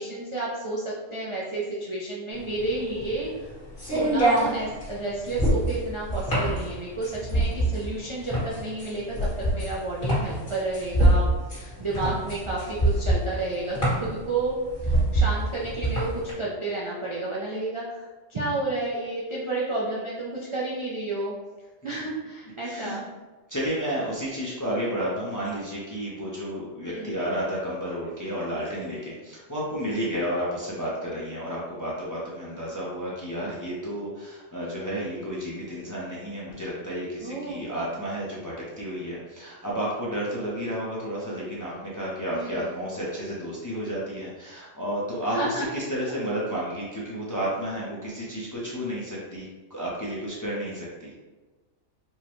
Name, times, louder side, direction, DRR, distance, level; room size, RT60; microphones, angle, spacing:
voice 1, 0.0-3.5 3.8-21.4 21.8-23.0 26.9-27.5 37.2-37.7 42.3-42.9 45.3-45.7 46.1-46.2, right 2 dB, 45° right, -6 dB, 0.4 m, -31 dB
sound 1, 2.4-16.3, right 1 dB, 50° left, 1.7 m, -25 dB
voice 2, 22.6-23.0 23.5-51.1, equal, 20° left, -6 dB, 0.5 m, -31 dB
4.5 x 2.2 x 3.0 m, 1.3 s
omnidirectional pair, 1.3 m